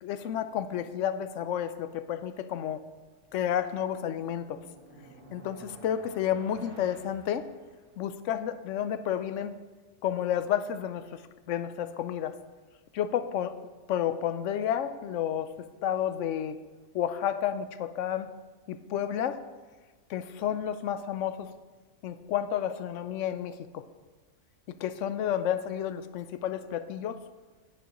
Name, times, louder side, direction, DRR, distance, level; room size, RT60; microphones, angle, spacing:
voice 1, 0.0-2.8 3.3-4.6 5.3-7.5 8.0-9.5 10.0-11.2 11.5-12.4 12.9-13.5 13.9-15.5 15.8-16.6 16.9-18.3 18.7-19.4 20.1-21.5 22.0-23.8 24.7-27.2, left 10 dB, 90° left, 12 dB, 0.9 m, -31 dB
sound 1, 3.2-8.2, right 2 dB, 50° right, 1.6 m, -52 dB
10.0 x 9.9 x 3.0 m, 1.3 s
omnidirectional pair, 1.2 m